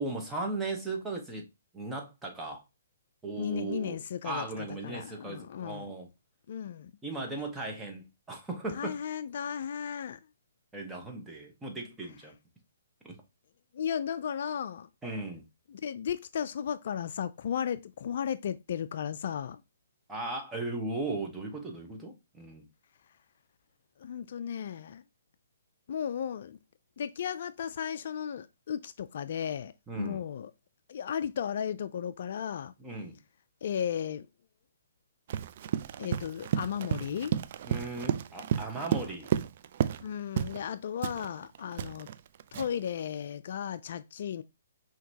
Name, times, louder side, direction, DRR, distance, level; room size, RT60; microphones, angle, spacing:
voice 1, 0.0-1.5 1.7-2.6 3.2-6.1 7.0-9.0 10.7-12.3 13.0-13.2 15.0-15.4 20.1-22.6 29.9-30.2 32.8-33.2 37.6-39.3, right 2 dB, 10° right, 1.1 m, -37 dB
voice 2, 3.4-4.4 4.8-5.9 6.5-6.9 8.8-10.2 13.7-14.9 15.7-19.6 24.0-25.0 25.9-26.6 27.0-30.5 30.9-32.7 33.6-34.3 36.0-37.3 40.0-42.1 42.5-44.4, left 8 dB, 55° left, 0.3 m, -35 dB
Run, 35.3-40.1 40.4-40.6 41.0-42.9, right 9 dB, 50° right, 0.3 m, -32 dB
5.7 x 2.9 x 2.8 m
hypercardioid pair, 145°, 0 cm